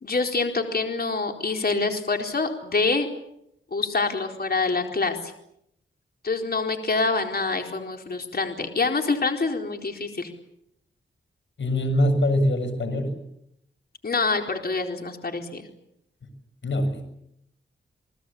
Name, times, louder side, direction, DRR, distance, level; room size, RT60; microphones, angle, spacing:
voice 1, 0.0-3.1 3.7-5.3 6.2-10.3 14.0-15.7, left 3 dB, 50° left, 4 dB, 4.3 m, -26 dB
voice 2, 11.6-13.2 16.2-16.3 16.6-17.1, left 1 dB, 65° left, 7 dB, 7.1 m, -23 dB
29.5 x 19.5 x 8.7 m, 0.77 s
cardioid pair, 70°, 21 cm